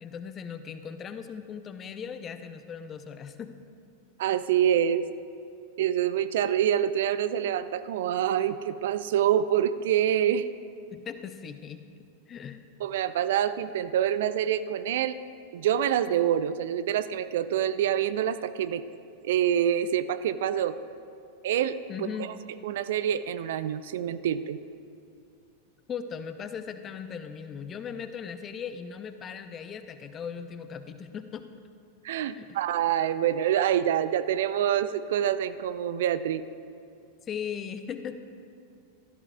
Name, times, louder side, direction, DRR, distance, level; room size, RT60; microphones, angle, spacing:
voice 1, 0.0-3.5 10.9-11.8 12.3-12.6 21.9-22.3 25.9-31.5 32.3-32.5 37.3-38.2, left 7 dB, 25° left, 9 dB, 0.6 m, -38 dB
voice 2, 4.2-5.1 5.8-10.5 12.8-15.2 15.5-18.8 19.2-20.8 21.4-22.3 22.6-24.6 32.0-36.4, right 10 dB, 55° right, 14 dB, 0.3 m, -26 dB
16.0 x 13.0 x 2.3 m, 2.5 s
figure-of-eight pair, 90°, 0 cm